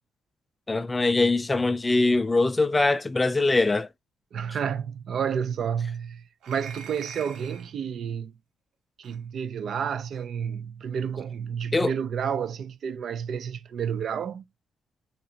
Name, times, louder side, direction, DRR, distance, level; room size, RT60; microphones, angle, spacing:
voice 1, 0.7-3.9 11.7-11.9, left 3 dB, 20° left, 0.3 m, -22 dB
voice 2, 4.3-8.3 9.0-14.4, right 7 dB, 60° right, 0.4 m, -30 dB
sound 1, 6.4-7.7 9.0-9.2 10.1-10.3, right 6 dB, 75° right, 0.8 m, -44 dB
3.7 x 2.8 x 3.1 m
cardioid pair, 90°, 0 cm